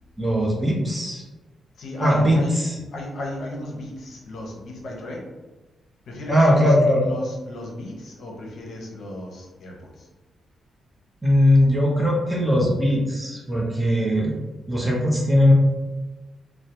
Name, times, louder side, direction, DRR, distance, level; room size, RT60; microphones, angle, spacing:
voice 1, 0.2-1.2 2.0-2.8 6.3-7.0 11.2-14.4 14.7-15.5, equal, 10° right, -3 dB, 0.7 m, -19 dB
voice 2, 1.8-2.6 2.9-5.2 6.1-6.7 7.0-10.1, left 1 dB, 70° left, -2 dB, 0.6 m, -35 dB
2.2 x 2.0 x 2.8 m, 1.2 s
cardioid pair, 95°, 0 cm